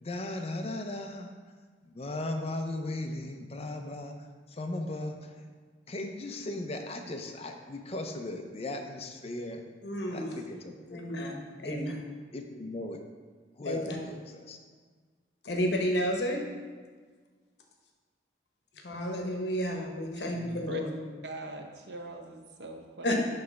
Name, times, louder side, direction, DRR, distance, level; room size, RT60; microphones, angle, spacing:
voice 1, 0.0-1.3 1.8-4.1 4.5-5.5 5.9-9.6 10.1-11.0 11.6-12.0 12.3-13.0 13.6-14.6 20.3-20.7, left 2 dB, 35° left, 5 dB, 0.5 m, -37 dB
voice 2, 9.8-10.3 10.9-12.0 13.6-14.0 15.4-16.4 18.8-20.9 23.0-23.2, equal, 70° left, 1 dB, 0.9 m, -31 dB
voice 3, 21.2-23.2, right 2 dB, 65° right, 3 dB, 0.7 m, -42 dB
6.1 x 3.2 x 5.7 m, 1.5 s
head